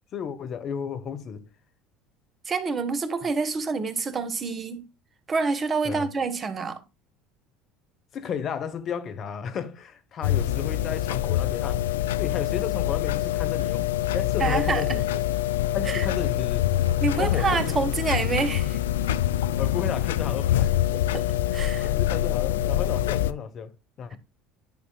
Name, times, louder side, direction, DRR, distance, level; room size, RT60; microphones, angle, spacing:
voice 1, 0.1-1.5 5.8-6.1 8.1-11.9 12.2-15.1 15.7-16.7 17.1-17.7 19.6-20.7 21.8-24.2, left 7 dB, 45° left, 1.1 m, -33 dB
voice 2, 2.5-4.9 5.3-6.8 14.4-15.0 15.9-16.1 17.0-18.8 20.9-21.3 21.5-21.9, right 4 dB, 30° right, 1.3 m, -27 dB
sound 1, 10.2-23.3, left 13 dB, 80° left, 0.3 m, -25 dB
sound 2, 13.2-19.4, right 4 dB, 85° right, 1.8 m, -46 dB
10.5 x 6.2 x 2.3 m
hypercardioid pair, 70°, 0 cm